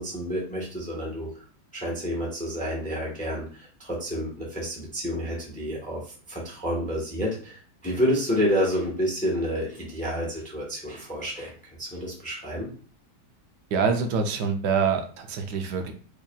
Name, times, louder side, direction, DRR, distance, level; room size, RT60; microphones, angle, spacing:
voice 1, 0.0-1.4 1.7-6.0 6.3-11.5 11.8-12.7, equal, 5° left, -3 dB, 0.8 m, -29 dB
voice 2, 13.7-15.9, right 5 dB, 80° right, 5 dB, 1.2 m, -25 dB
4.8 x 2.7 x 2.2 m, 0.41 s
omnidirectional pair, 1.8 m